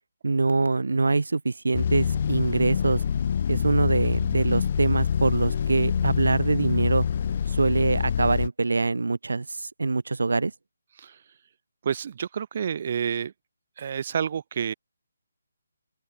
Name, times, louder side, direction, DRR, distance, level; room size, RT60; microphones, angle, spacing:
voice 1, 0.2-3.0 3.5-7.1 7.5-10.5, right 3 dB, 85° right, 1.9 m, -24 dB
sound 1, 1.7-8.5, left 7 dB, 40° left, 4.6 m, -26 dB
voice 2, 11.8-13.3 13.8-14.7, right 7 dB, 40° right, 2.8 m, -29 dB
open air
hypercardioid pair, 165°, 0 cm